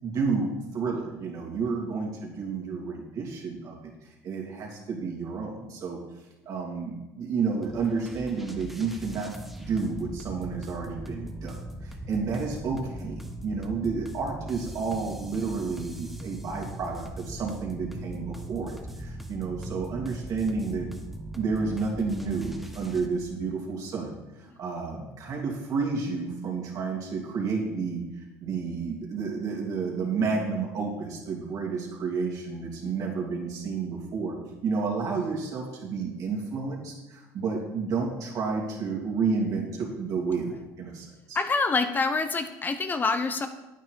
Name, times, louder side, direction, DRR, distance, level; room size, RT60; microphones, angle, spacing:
voice 1, 0.0-6.0 6.4-9.3 9.6-11.5 11.8-20.9 21.3-34.4 34.6-41.4, right 4 dB, 55° right, -1 dB, 3.0 m, -31 dB
sound 1, 7.6-23.1, right 1 dB, 5° right, 1.1 m, -40 dB
voice 2, 41.3-43.5, left 4 dB, 25° left, 8 dB, 0.7 m, -26 dB
9.1 x 9.1 x 4.7 m, 1.0 s
supercardioid pair, 95°, 7 cm